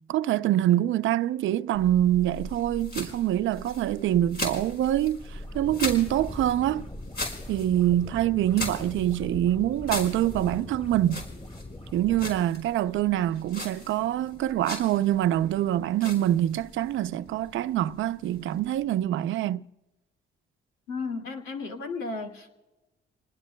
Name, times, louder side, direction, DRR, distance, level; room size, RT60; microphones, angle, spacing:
voice 1, 0.1-6.9 7.5-11.3 11.9-19.6, right 12 dB, 75° right, 0.6 m, -25 dB
sound 1, 1.7-19.0, left 2 dB, 55° left, 5.0 m, -40 dB
sound 2, 5.1-12.4, left 1 dB, 30° left, 6.8 m, -42 dB
voice 2, 20.9-22.6, left 4 dB, 85° left, 2.3 m, -34 dB
29.0 x 20.0 x 2.3 m
cardioid pair, 90°, 20 cm